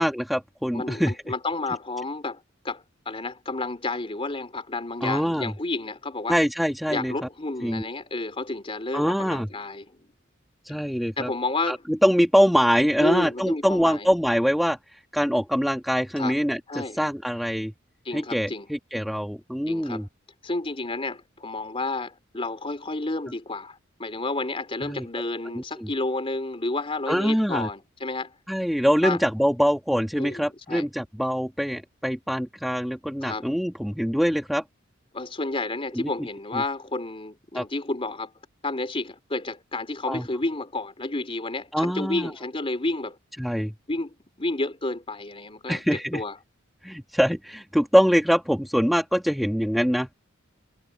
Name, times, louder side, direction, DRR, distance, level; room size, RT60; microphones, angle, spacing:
voice 1, 0.0-1.1 5.0-5.5 6.3-7.1 7.6-7.9 8.9-9.5 10.6-11.3 11.7-14.8 15.1-17.7 18.1-20.1 24.8-25.1 25.5-25.9 27.1-27.7 28.5-34.6 35.9-36.1 36.5-36.6 37.5-37.6 40.1-40.3 41.7-42.3 43.4-43.7 45.7-46.2 46.8-50.1, equal, ahead, 1.3 m, -24 dB
voice 2, 0.7-6.3 6.9-10.1 11.2-11.8 13.0-14.1 16.2-16.4 16.7-17.0 18.0-18.7 19.7-20.0 20.4-28.3 29.0-29.2 30.2-30.9 33.2-33.5 35.1-38.3 38.6-43.2 43.9-46.3, left 2 dB, 30° left, 3.3 m, -31 dB
head